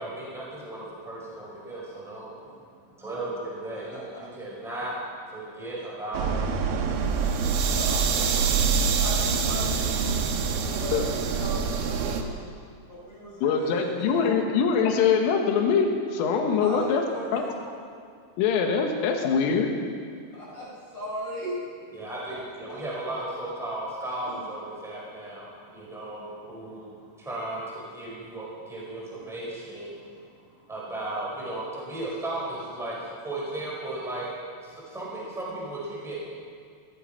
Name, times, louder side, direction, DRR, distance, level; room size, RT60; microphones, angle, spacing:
voice 1, 0.0-6.3 6.6-7.8 8.1-9.0 12.0-12.3 21.9-34.3 34.6-36.3, right 1 dB, ahead, -6 dB, 4.3 m, -36 dB
voice 2, 3.7-4.2 5.8-5.9 7.7-8.0 8.8-12.3 12.9-13.7 14.1-14.2 16.6-17.6 20.3-20.7 20.9-21.6 24.2-24.4, equal, 30° left, -7 dB, 4.9 m, -37 dB
sound 1, 6.1-12.2, right 5 dB, 75° right, 2.3 m, -25 dB
voice 3, 13.4-17.0 17.3-17.4 18.4-19.7, left 6 dB, 85° left, 3 dB, 4.0 m, -23 dB
18.5 x 13.5 x 5.8 m, 2.2 s
omnidirectional pair, 5.8 m